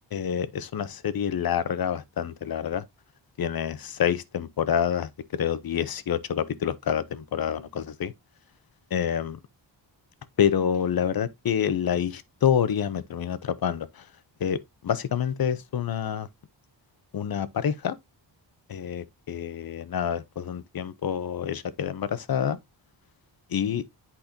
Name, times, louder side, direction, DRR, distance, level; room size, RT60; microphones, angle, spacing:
voice 1, 0.1-2.8 3.4-8.1 8.9-9.4 10.4-14.1 14.4-14.6 14.8-16.3 17.1-18.0 18.7-22.6 23.5-23.8, left 8 dB, 50° left, 0.7 m, -27 dB
8.4 x 5.1 x 2.7 m
wide cardioid pair, 180°, 45 cm